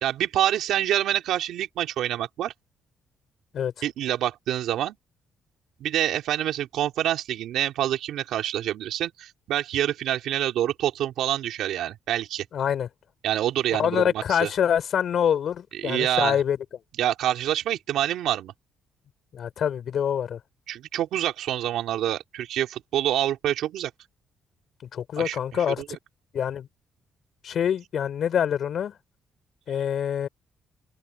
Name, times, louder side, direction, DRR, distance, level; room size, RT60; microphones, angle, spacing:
voice 1, 0.0-2.5 3.8-5.0 5.8-12.5 13.2-14.5 15.8-16.4 17.0-18.5 20.7-23.9 25.2-25.4, right 12 dB, 80° right, 3.4 m, -26 dB
voice 2, 12.5-12.9 13.8-16.6 19.3-20.4 24.9-26.0 26.3-26.7 27.4-28.9 29.7-30.3, left 8 dB, 60° left, 4.5 m, -25 dB
open air
cardioid pair, 90°, 0 cm